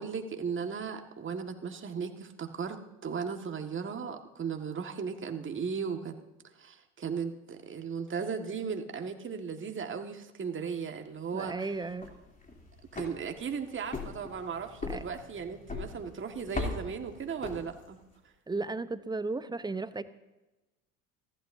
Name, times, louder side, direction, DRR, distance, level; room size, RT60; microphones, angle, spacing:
voice 1, 0.0-6.2 6.6-11.7 12.9-18.0, right 6 dB, 25° right, 5 dB, 1.8 m, -36 dB
voice 2, 11.3-12.1 14.9-15.0 18.5-20.0, right 3 dB, 10° right, 13 dB, 0.8 m, -34 dB
sound 1, 11.8-18.1, left 3 dB, 20° left, 3.1 m, -41 dB
29.5 x 11.5 x 2.7 m, 1.0 s
figure-of-eight pair, 65°, 43 cm